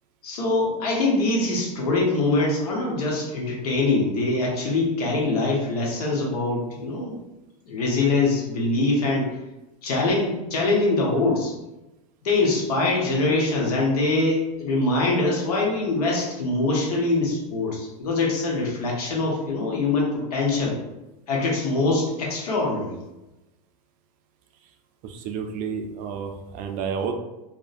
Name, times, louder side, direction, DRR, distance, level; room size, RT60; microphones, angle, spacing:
voice 1, 0.2-7.2 7.7-9.3 9.8-11.5 12.2-20.8 21.3-22.9, left 2 dB, 90° left, -2 dB, 0.9 m, -23 dB
voice 2, 25.0-27.1, right 6 dB, 50° right, 5 dB, 0.4 m, -30 dB
2.6 x 2.1 x 2.4 m, 1.0 s
supercardioid pair, 120°, 19 cm